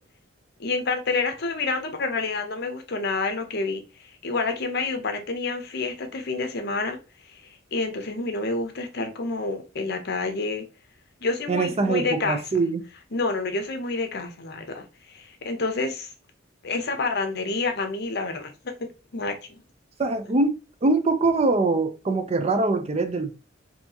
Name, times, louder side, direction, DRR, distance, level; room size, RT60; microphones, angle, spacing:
voice 1, 0.6-7.0 7.3-7.4 7.7-10.6 11.2-12.4 13.1-16.1 16.6-19.6, left 3 dB, 60° left, 0.8 m, -28 dB
voice 2, 11.5-12.8 20.0-20.6 20.8-23.3, right 3 dB, 35° right, 0.5 m, -23 dB
4.4 x 2.8 x 2.8 m
head